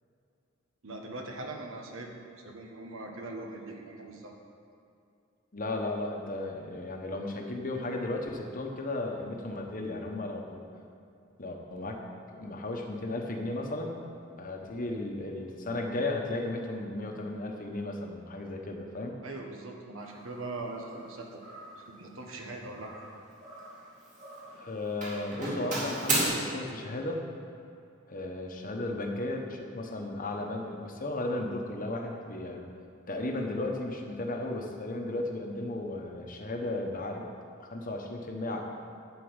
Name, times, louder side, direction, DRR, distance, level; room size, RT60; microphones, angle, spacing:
voice 1, 0.8-2.1 2.4-4.3 19.2-21.4 21.8-23.1, right 2 dB, 75° right, 2 dB, 1.3 m, -41 dB
voice 2, 5.5-10.7 11.4-12.0 12.3-14.0 14.4-19.2 24.5-27.2 28.1-32.6 33.1-37.3 37.6-38.6, left 2 dB, 40° left, 2 dB, 1.1 m, -35 dB
Doorbell, 20.0-20.2 20.8-21.1 21.4-21.8 22.8-23.8 24.1-24.6 25.0-26.3, right 2 dB, 40° right, 2.6 m, -34 dB
11.0 x 4.6 x 8.1 m, 2.5 s
head